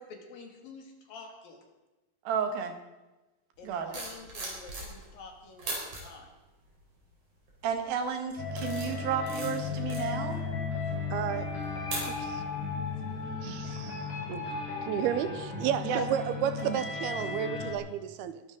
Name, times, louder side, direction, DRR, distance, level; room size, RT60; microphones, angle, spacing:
voice 1, 0.0-1.6 3.6-6.3, left 3 dB, 65° left, 2 dB, 3.9 m, -49 dB
voice 2, 2.3-2.8 3.6-4.0 7.6-10.4 13.4-13.6 15.8-16.0 16.6-16.8, right 7 dB, 70° right, 5 dB, 3.3 m, -32 dB
sound 1, 3.7-5.2 5.6-6.0 6.7-7.0 7.5-7.8 8.3-12.6 12.9-13.1, right 2 dB, 55° right, 5.8 m, -40 dB
Peaceful Ambiance Music, 8.4-17.8, left 4 dB, 45° left, 4.0 m, -35 dB
voice 3, 11.1-11.5 12.1-12.4 13.4-14.5 14.9-18.4, right 10 dB, 90° right, 11 dB, 2.8 m, -32 dB
22.0 x 13.0 x 3.9 m, 1.1 s
omnidirectional pair, 4.5 m